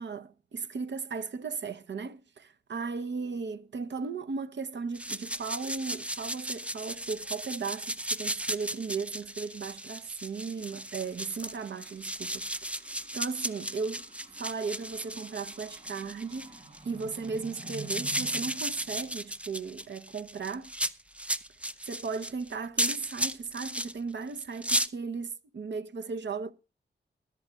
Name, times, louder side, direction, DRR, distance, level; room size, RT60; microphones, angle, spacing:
voice 1, 0.0-14.0 14.4-20.7 21.8-26.5, right 5 dB, 65° right, 0.8 m, -36 dB
sound 1, 4.9-23.9 24.4-24.9, right 1 dB, 5° right, 0.5 m, -35 dB
sound 2, 9.0-19.6, right 4 dB, 35° right, 6.5 m, -51 dB
21.5 x 11.0 x 2.3 m
wide cardioid pair, 100°, 20 cm